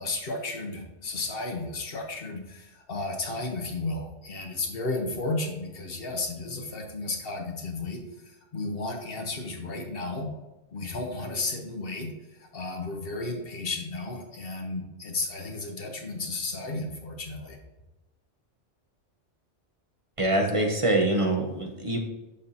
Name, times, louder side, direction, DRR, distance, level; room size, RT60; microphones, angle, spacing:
voice 1, 0.0-10.3 10.7-17.6, left 2 dB, 55° left, 2 dB, 1.2 m, -33 dB
voice 2, 20.2-22.0, right 1 dB, 30° right, 1 dB, 0.8 m, -24 dB
6.9 x 5.6 x 2.7 m, 1.1 s
omnidirectional pair, 1.2 m